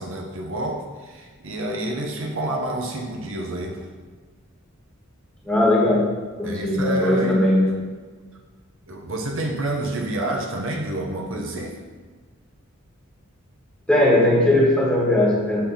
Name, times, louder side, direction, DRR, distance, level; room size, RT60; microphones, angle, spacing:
voice 1, 0.0-3.9 6.4-7.8 8.9-11.8, right 1 dB, 65° right, 1 dB, 0.8 m, -29 dB
voice 2, 5.4-6.0 6.4-7.7 13.9-15.6, left 1 dB, 5° left, -5 dB, 1.5 m, -18 dB
6.8 x 3.5 x 5.7 m, 1.4 s
head